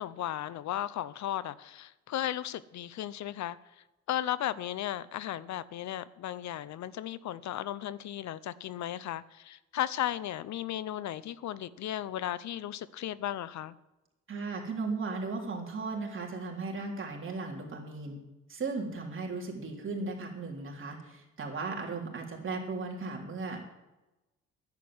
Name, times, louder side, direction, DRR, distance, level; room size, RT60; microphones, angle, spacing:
voice 1, 0.0-13.7, left 12 dB, 65° left, 0.6 m, -35 dB
voice 2, 14.3-18.2 18.5-23.6, right 3 dB, 40° right, 3.5 m, -36 dB
10.5 x 8.2 x 9.6 m
cardioid pair, 90°, 30 cm